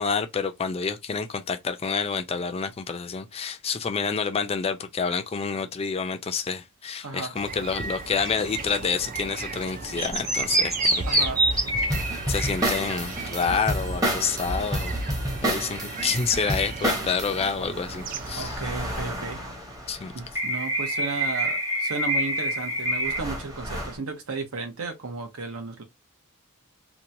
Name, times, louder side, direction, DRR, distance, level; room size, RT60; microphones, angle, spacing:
voice 1, 0.0-11.8 12.3-15.0 15.4-18.6 19.9-20.1, left 5 dB, 25° left, 0.4 m, -28 dB
sound 1, 7.3-18.6, right 3 dB, 40° right, 0.4 m, -35 dB
sound 2, 10.0-24.0, right 1 dB, 15° right, 0.8 m, -28 dB
voice 2, 11.1-11.4 18.4-19.4 20.1-25.8, right 4 dB, 70° right, 0.8 m, -34 dB
2.9 x 2.2 x 2.5 m
head